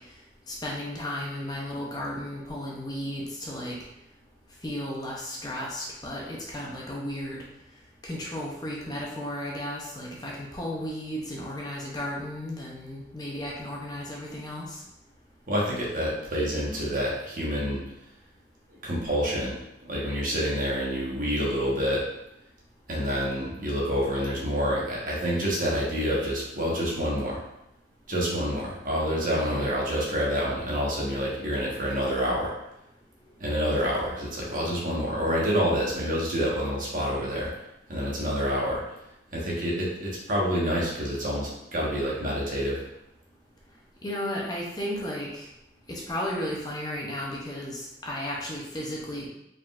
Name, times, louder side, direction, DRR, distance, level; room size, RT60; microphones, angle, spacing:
voice 1, 0.5-3.8 4.6-7.4 8.0-14.8 29.3-29.7 44.0-45.5 45.9-49.3, left 1 dB, 20° left, -3 dB, 0.7 m, -34 dB
voice 2, 15.5-17.8 18.8-19.6 19.8-22.0 22.9-27.4 28.1-32.5 33.4-37.5 37.9-38.8 39.3-42.8, equal, 50° right, -5 dB, 1.2 m, -27 dB
4.7 x 3.7 x 2.5 m, 0.85 s
head